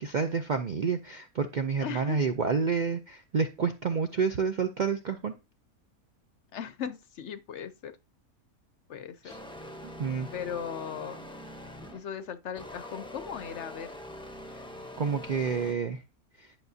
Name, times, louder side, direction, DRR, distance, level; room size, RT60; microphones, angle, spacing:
voice 1, 0.0-5.3 9.2-9.4 9.8-10.3 15.0-16.0 16.4-16.5, right 5 dB, 85° right, 0.4 m, -29 dB
voice 2, 1.8-2.2 6.5-7.9 8.9-9.3 10.3-11.3 11.9-13.9, left 8 dB, 65° left, 0.8 m, -38 dB
sound 1, 9.3-12.1 12.5-15.7, left 1 dB, 5° left, 0.6 m, -44 dB
11.0 x 6.0 x 2.7 m
omnidirectional pair, 1.6 m